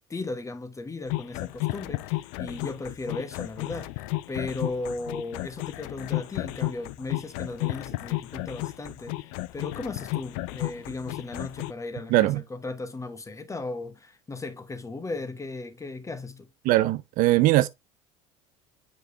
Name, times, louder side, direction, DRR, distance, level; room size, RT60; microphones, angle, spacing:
voice 1, 0.1-16.5, left 3 dB, 15° left, 1.2 m, -36 dB
sound 1, 1.1-11.7, left 20 dB, 60° left, 0.5 m, -33 dB
voice 2, 12.1-12.4 16.6-17.7, right 16 dB, 50° right, 0.5 m, -20 dB
7.8 x 5.2 x 2.6 m
hypercardioid pair, 70°, 17 cm